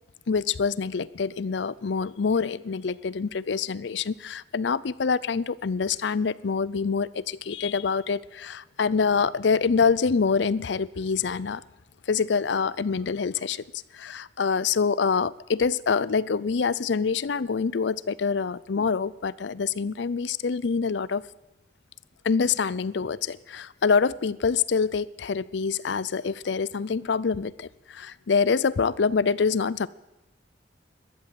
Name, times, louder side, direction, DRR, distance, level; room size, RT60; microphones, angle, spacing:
voice 1, 0.3-11.6 12.1-13.6 13.9-21.2 22.2-29.9, left 5 dB, 70° left, 20 dB, 0.5 m, -26 dB
14.5 x 12.5 x 7.6 m, 0.95 s
head